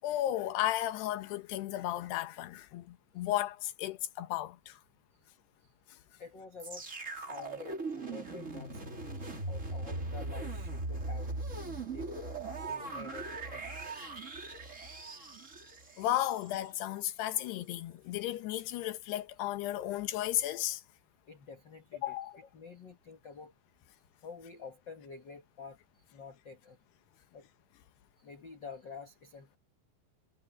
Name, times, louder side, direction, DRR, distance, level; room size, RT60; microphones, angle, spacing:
voice 1, 0.0-4.8 16.0-20.8 22.0-22.3, left 13 dB, 85° left, 3.3 m, -34 dB
voice 2, 6.2-11.3 11.9-14.0 21.3-23.5 24.2-25.8 26.1-26.8 27.3-27.5 28.2-29.6, left 4 dB, 65° left, 1.1 m, -49 dB
sound 1, 6.6-16.7 17.3-17.4, right 2 dB, 20° right, 2.8 m, -40 dB
omnidirectional pair, 4.6 m